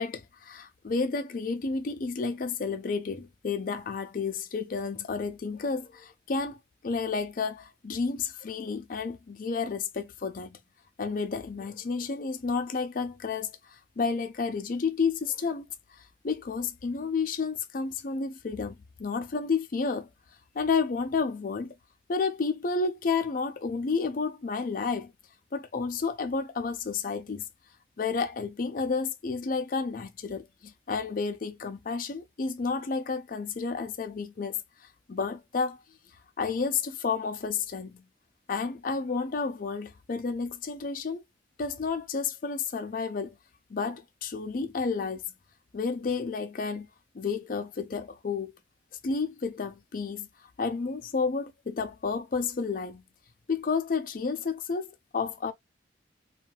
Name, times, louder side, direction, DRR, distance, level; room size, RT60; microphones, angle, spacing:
voice 1, 0.0-6.6 6.8-10.6 11.0-20.1 20.5-21.7 22.1-25.1 25.5-27.5 28.0-34.6 35.1-35.8 36.4-38.0 38.5-41.2 41.6-43.4 43.7-45.2 45.7-46.9 47.1-48.5 49.0-50.3 50.6-53.0 53.5-55.5, left 4 dB, 50° left, 0.4 m, -31 dB
2.6 x 2.2 x 3.1 m
head